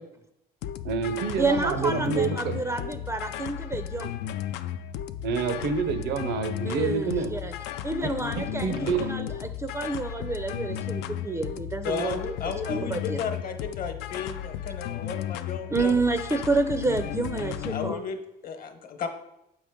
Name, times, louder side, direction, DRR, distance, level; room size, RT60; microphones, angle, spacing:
sound 1, 0.6-17.9, left 11 dB, 90° left, 0.4 m, -34 dB
voice 1, 0.8-2.6 5.2-7.3 8.0-8.1 8.4-9.1, right 5 dB, 80° right, 10 dB, 0.7 m, -28 dB
voice 2, 1.4-4.1 6.6-7.5 7.8-12.2 12.6-13.2 15.7-18.0, right 3 dB, 15° right, 8 dB, 0.4 m, -29 dB
voice 3, 11.8-16.0 17.7-19.1, left 6 dB, 55° left, 7 dB, 1.0 m, -34 dB
7.3 x 5.1 x 3.6 m, 0.84 s
cardioid pair, 110°, 17 cm